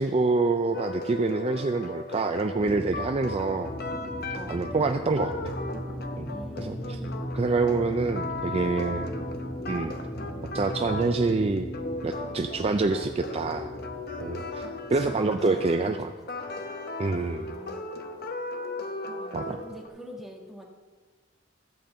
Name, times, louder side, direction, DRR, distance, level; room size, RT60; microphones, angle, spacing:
voice 1, 0.0-3.7 4.5-5.4 6.2-7.0 7.3-9.1 9.7-9.9 10.5-11.7 12.0-13.7 14.2-16.1 17.0-17.6 19.3-19.6, right 3 dB, 30° right, 6 dB, 0.4 m, -26 dB
sound 1, 0.7-19.9, left 2 dB, 50° left, 0.9 m, -37 dB
sound 2, 2.5-16.7, equal, 25° left, 1.7 m, -38 dB
sound 3, 3.5-10.9, equal, 80° left, 2.1 m, -48 dB
voice 2, 6.3-7.3 14.9-16.1 17.1-18.0 19.2-20.6, equal, ahead, -2 dB, 1.5 m, -45 dB
14.0 x 5.3 x 7.6 m, 1.4 s
head